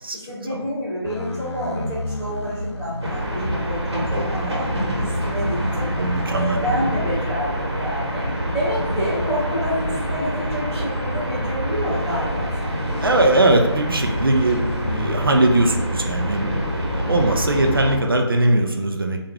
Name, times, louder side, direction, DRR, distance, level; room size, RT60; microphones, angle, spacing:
voice 1, 0.3-4.6 4.9-5.9 6.3-13.2, equal, 5° left, -21 dB, 0.5 m, -28 dB
sound 1, 1.0-3.4 4.4-6.9 7.3-7.6 8.7-10.8 11.8-13.8 14.7-15.5, left 1 dB, 80° left, 0.5 m, -33 dB
sound 2, 3.0-18.0, equal, 70° right, 1.2 m, -26 dB
voice 2, 4.1-4.6 4.8-5.1 6.0-6.6 13.0-19.3, right 2 dB, 55° right, 3 dB, 0.4 m, -21 dB
3.5 x 2.3 x 3.3 m, 1.0 s
figure-of-eight pair, 175°, 14 cm